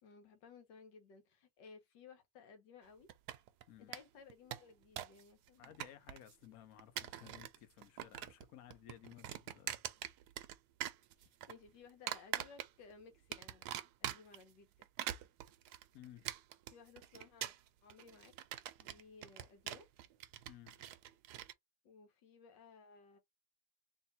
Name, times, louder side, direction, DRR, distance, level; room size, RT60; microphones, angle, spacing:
voice 1, 0.0-3.1 3.8-5.7 11.2-14.9 16.7-17.5 17.8-18.3 18.8-19.9 21.8-23.2, left 5 dB, 80° left, 1.6 m, -59 dB
sound 1, 3.1-3.6 3.9-4.0 4.3-5.2 5.5-6.3 6.8-7.6 7.8-8.5 8.7-10.6 10.8-11.5 12.1-12.9 13.3-14.4 14.8-21.5, right 12 dB, 75° right, 1.1 m, -43 dB
voice 2, 5.6-9.8 15.9-16.3 20.5-20.9, left 11 dB, 60° left, 1.1 m, -57 dB
3.5 x 2.7 x 4.2 m
omnidirectional pair, 1.9 m